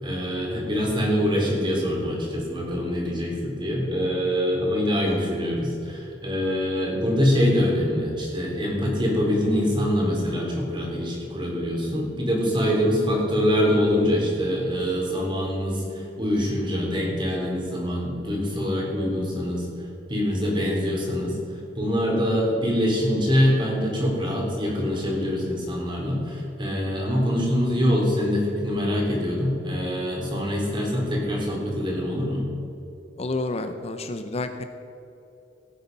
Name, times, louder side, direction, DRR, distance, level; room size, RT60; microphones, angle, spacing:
voice 1, 0.0-19.7 20.1-21.4 21.8-32.4, equal, 25° right, -2 dB, 3.7 m, -24 dB
voice 2, 33.2-34.6, left 2 dB, 35° left, 8 dB, 0.6 m, -30 dB
17.0 x 9.5 x 5.4 m, 2.9 s
head